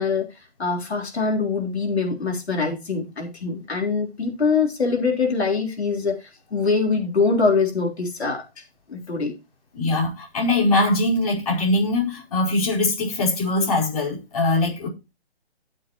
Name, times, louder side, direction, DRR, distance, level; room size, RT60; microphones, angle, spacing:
voice 1, 0.0-6.2 6.5-8.4 8.9-9.3, left 4 dB, 75° left, 3.8 m, -23 dB
voice 2, 9.7-14.9, left 2 dB, 35° left, 4.9 m, -22 dB
14.0 x 7.6 x 3.1 m
hypercardioid pair, 175°, 32 cm